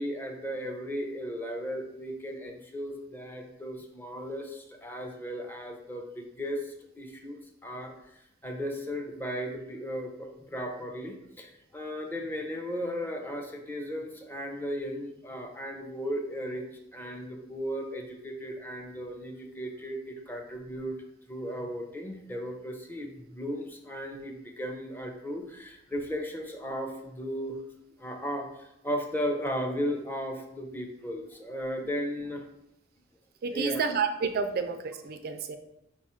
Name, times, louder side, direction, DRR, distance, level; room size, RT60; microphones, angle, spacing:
voice 1, 0.0-16.6 16.9-21.0 21.3-27.6 28.0-32.5 33.5-33.8, equal, 10° left, 2 dB, 0.5 m, -36 dB
voice 2, 33.4-35.6, right 5 dB, 50° right, 7 dB, 0.3 m, -30 dB
5.0 x 2.4 x 4.2 m, 0.82 s
head